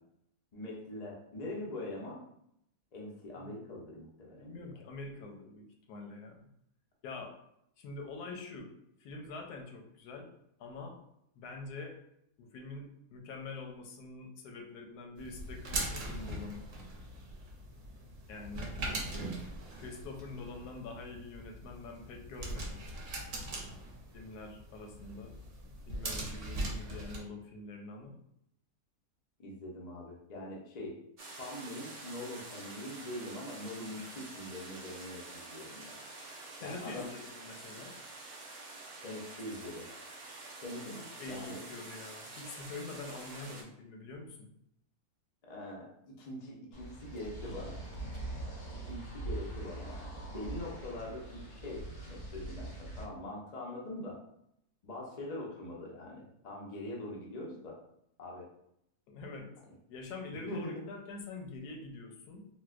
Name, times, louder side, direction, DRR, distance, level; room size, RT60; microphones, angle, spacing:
voice 1, 0.5-2.2 2.9-4.7 29.4-31.0 31.4-36.0 36.6-37.1 39.0-39.9 40.6-41.0 41.3-41.6 45.4-47.8 48.9-54.2 54.8-57.8 58.2-58.5 60.4-60.8, left 1 dB, 50° left, -2 dB, 0.4 m, -43 dB
voice 2, 4.4-6.5 7.0-7.3 7.8-8.7 9.0-10.3 10.6-11.0 11.3-12.0 12.4-16.7 18.3-18.7 19.8-22.8 24.1-25.3 25.9-28.1 34.0-34.1 36.6-37.9 41.0-44.5 59.1-59.5 59.9-62.5, left 3 dB, 85° left, 2 dB, 1.2 m, -45 dB
sound 1, 15.2-27.2, right 1 dB, 60° right, 0.9 m, -41 dB
sound 2, 31.2-43.6, right 2 dB, 85° right, 0.4 m, -48 dB
sound 3, 46.7-53.0, right 2 dB, 65° left, 2.2 m, -42 dB
4.1 x 2.2 x 2.4 m, 0.76 s
omnidirectional pair, 1.7 m